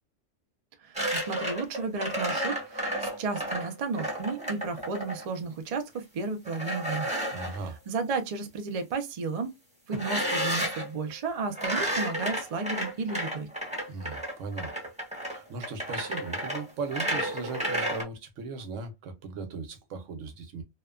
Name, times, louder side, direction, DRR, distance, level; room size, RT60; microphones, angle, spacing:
voice 1, 0.8-7.1 7.5-9.5 9.9-13.5, right 4 dB, 70° right, 0.3 m, -33 dB
sound 1, 1.0-5.2 6.5-7.6 9.9-10.9 11.5-18.0, right 1 dB, 5° right, 0.9 m, -32 dB
voice 2, 7.3-7.8 13.9-14.7 15.3-20.6, right 4 dB, 85° right, 1.1 m, -38 dB
2.8 x 2.1 x 2.3 m
omnidirectional pair, 1.3 m